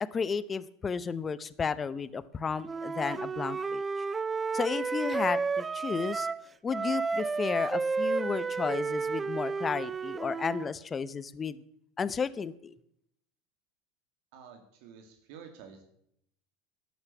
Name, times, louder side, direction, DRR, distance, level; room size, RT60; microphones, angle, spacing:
voice 1, 0.0-3.8 4.5-6.3 6.6-11.6 12.0-12.7, left 5 dB, 20° left, 17 dB, 0.7 m, -33 dB
Wind instrument woodwind instrument, 2.6-6.4 6.7-10.7, right 4 dB, 15° right, 0.4 m, -32 dB
voice 2, 14.3-15.8, right 7 dB, 65° right, 5 dB, 2.1 m, -50 dB
12.5 x 9.6 x 6.8 m, 0.72 s
supercardioid pair, 135°, 0 cm